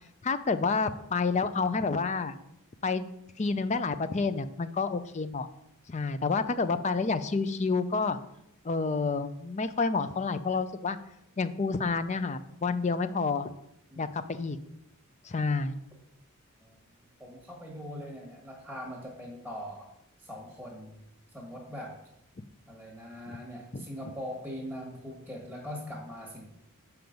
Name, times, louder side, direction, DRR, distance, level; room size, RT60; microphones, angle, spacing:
voice 1, 0.2-2.3 2.8-3.1 3.4-5.5 5.9-8.2 8.6-11.0 11.4-13.5 14.0-14.6 15.2-15.7 23.7-23.9, left 4 dB, 30° left, 12 dB, 0.4 m, -29 dB
voice 2, 17.2-19.9 20.2-21.0 21.3-22.0 22.7-26.4, equal, ahead, -2 dB, 1.6 m, -41 dB
7.8 x 5.8 x 5.2 m, 0.81 s
head